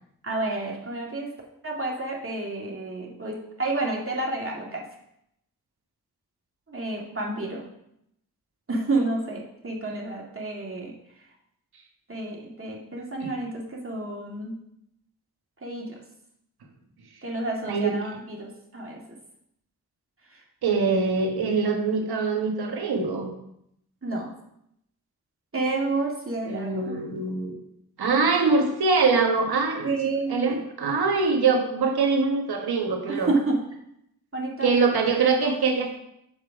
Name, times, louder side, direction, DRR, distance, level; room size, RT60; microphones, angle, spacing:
voice 1, 0.2-1.3 1.6-4.9 6.7-7.6 8.7-10.9 12.1-14.6 15.6-16.0 17.2-19.0 20.3-20.4 24.0-24.3 25.5-27.0 29.8-30.7 33.1-33.6 34.3-35.0, right 2 dB, 35° right, -2 dB, 2.3 m, -30 dB
voice 2, 20.6-23.3 26.5-27.5 28.0-29.9 30.3-33.3 34.6-36.0, right 4 dB, 85° right, 2 dB, 1.4 m, -23 dB
7.2 x 5.1 x 4.8 m, 0.77 s
cardioid pair, 50°, 37 cm